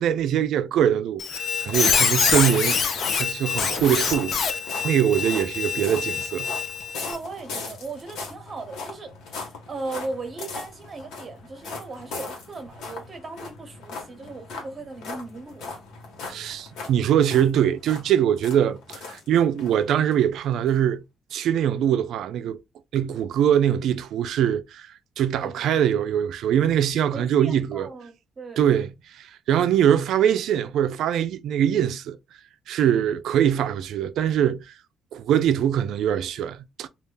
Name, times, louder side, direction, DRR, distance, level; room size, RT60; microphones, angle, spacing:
voice 1, 0.0-6.5 16.3-21.0 21.3-22.6 22.9-24.9 25.2-27.9 28.6-32.2 32.7-34.6 35.1-36.9, right 9 dB, 80° right, 0.3 m, -23 dB
Squeak, 1.2-7.2, left 6 dB, 60° left, 0.4 m, -25 dB
sound 1, 1.6-19.7 20.1-20.2 20.7-20.8, left 3 dB, 85° left, 0.9 m, -39 dB
voice 2, 7.0-15.8 25.3-25.7 27.1-28.7, right 3 dB, 40° right, 0.9 m, -37 dB
2.3 x 2.1 x 3.1 m
cardioid pair, 90°, 0 cm